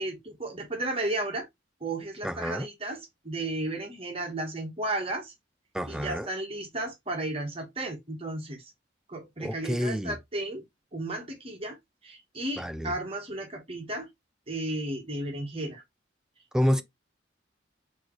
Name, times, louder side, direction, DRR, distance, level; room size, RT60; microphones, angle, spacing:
voice 1, 0.0-1.5 1.8-3.0 3.2-5.3 5.9-8.7 9.1-10.6 10.9-11.8 12.0-14.1 14.5-15.8, right 2 dB, 30° right, 1.3 m, -34 dB
voice 2, 2.2-2.7 5.7-6.3 9.4-10.2 12.6-12.9 16.5-16.8, equal, 5° right, 0.3 m, -28 dB
4.5 x 3.0 x 3.0 m
head